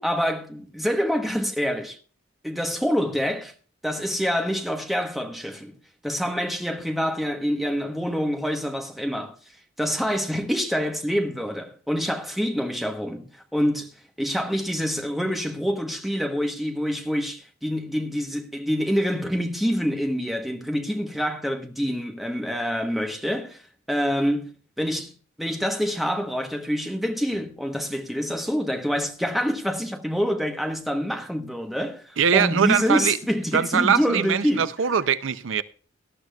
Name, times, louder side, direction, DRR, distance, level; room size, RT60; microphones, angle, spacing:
voice 1, 0.0-2.0 2.4-3.5 3.8-5.7 6.0-9.4 9.8-23.6 23.9-25.1 25.4-34.7, equal, ahead, 1.1 m, -26 dB
voice 2, 32.2-33.2 33.5-35.6, right 7 dB, 75° right, 0.5 m, -22 dB
18.0 x 12.0 x 2.3 m
head